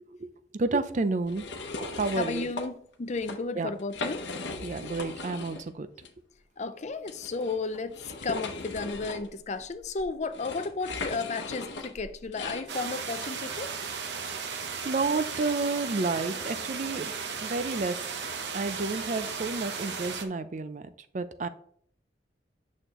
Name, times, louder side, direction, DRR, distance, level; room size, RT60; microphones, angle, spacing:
voice 1, 0.5-1.4 1.8-2.5 3.6-3.7 4.6-5.9 14.8-17.1 17.4-18.0 18.5-20.8 21.1-21.5, right 3 dB, 45° right, 0.5 m, -30 dB
sound 1, 1.3-2.7 3.1-3.4 3.8-5.7 6.0-6.1 7.1-12.7, left 3 dB, 80° left, 0.9 m, -38 dB
voice 2, 2.2-4.3 6.6-13.8, left 3 dB, 40° left, 0.5 m, -33 dB
sound 2, 12.7-20.2, right 5 dB, 70° right, 0.9 m, -35 dB
8.8 x 6.3 x 3.0 m
head